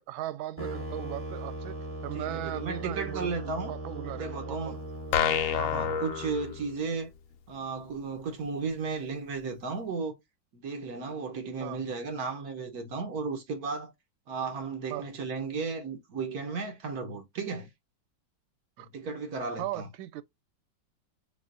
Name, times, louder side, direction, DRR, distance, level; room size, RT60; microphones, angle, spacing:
voice 1, 0.0-1.8 2.0-4.8 5.7-5.9 11.6-11.8 14.9-15.1 18.8-18.9 19.6-20.2, right 14 dB, 90° right, 1.4 m, -38 dB
sound 1, 0.6-6.7, right 1 dB, 10° right, 1.0 m, -39 dB
voice 2, 2.1-3.7 4.2-4.8 5.5-7.1 7.5-10.1 10.5-13.9 14.3-17.7 18.8-19.9, right 4 dB, 55° right, 1.3 m, -34 dB
sound 2, 5.1-7.0, left 8 dB, 90° left, 0.7 m, -29 dB
6.8 x 2.4 x 2.5 m
omnidirectional pair, 2.1 m